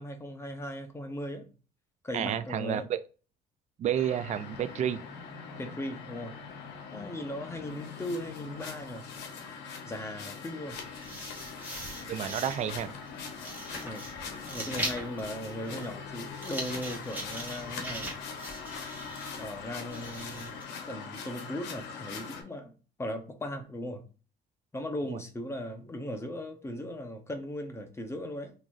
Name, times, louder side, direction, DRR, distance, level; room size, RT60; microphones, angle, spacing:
voice 1, 0.0-1.5 2.0-2.9 5.6-6.3 6.9-9.0 9.8-10.8 13.8-14.0 14.4-18.1 19.4-20.5 20.9-22.7 23.0-24.0 24.7-28.5, left 1 dB, 15° left, 6 dB, 0.8 m, -38 dB
voice 2, 2.1-3.0 3.8-5.0 12.0-12.9 25.1-25.2, right 10 dB, 45° right, 12 dB, 0.4 m, -30 dB
sound 1, 3.9-22.4, left 5 dB, 85° left, 1.0 m, -42 dB
sound 2, 10.7-20.6, right 1 dB, 10° right, 1.5 m, -41 dB
3.9 x 2.9 x 2.5 m, 0.35 s
cardioid pair, 110°, 17 cm